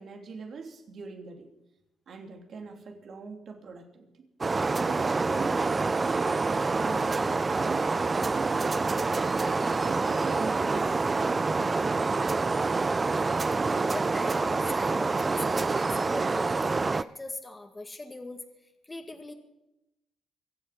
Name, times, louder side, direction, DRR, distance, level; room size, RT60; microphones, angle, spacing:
voice 1, 0.0-1.5 2.1-4.1 4.8-8.7 9.7-11.9, right 4 dB, 55° right, 4 dB, 3.0 m, -41 dB
sound 1, 4.4-17.0, right 3 dB, 25° right, 0.5 m, -27 dB
voice 2, 13.2-18.4 18.8-19.3, left 2 dB, 20° left, 5 dB, 2.0 m, -41 dB
24.0 x 8.2 x 6.0 m, 0.89 s
cardioid pair, 90°, 0 cm